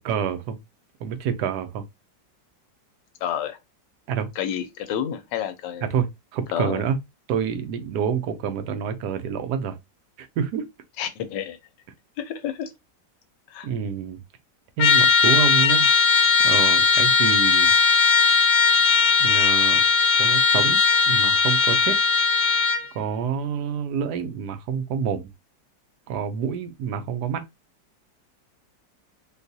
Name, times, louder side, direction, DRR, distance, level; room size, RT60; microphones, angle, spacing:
voice 1, 0.0-0.6 1.0-1.8 4.1-4.3 5.8-7.0 7.3-9.8 10.2-10.6 13.6-14.2 14.8-15.9 16.4-17.7 19.2-19.8 20.2-20.8 21.1-21.9 22.9-25.3 26.1-27.4, right 7 dB, 75° right, 1.1 m, -27 dB
voice 2, 3.2-3.6 4.4-5.9 6.5-6.8 11.0-11.6 12.2-12.7 13.5-13.7, left 9 dB, 80° left, 1.2 m, -29 dB
Trumpet, 14.8-22.9, left 5 dB, 60° left, 0.9 m, -18 dB
3.8 x 2.3 x 2.6 m
omnidirectional pair, 1.9 m